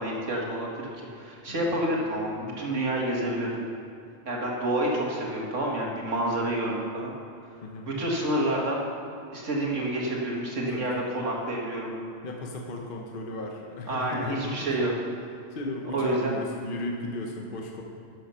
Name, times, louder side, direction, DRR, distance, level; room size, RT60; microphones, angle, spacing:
voice 1, 0.0-3.6 4.3-7.1 7.9-8.8 9.3-11.9 13.9-14.9 15.9-16.3, right 1 dB, 90° right, -2 dB, 2.2 m, -28 dB
voice 2, 7.6-7.9 10.7-11.0 12.2-15.0 15.5-17.8, left 1 dB, 50° left, 1 dB, 1.1 m, -35 dB
12.0 x 7.6 x 5.6 m, 2.6 s
omnidirectional pair, 1.2 m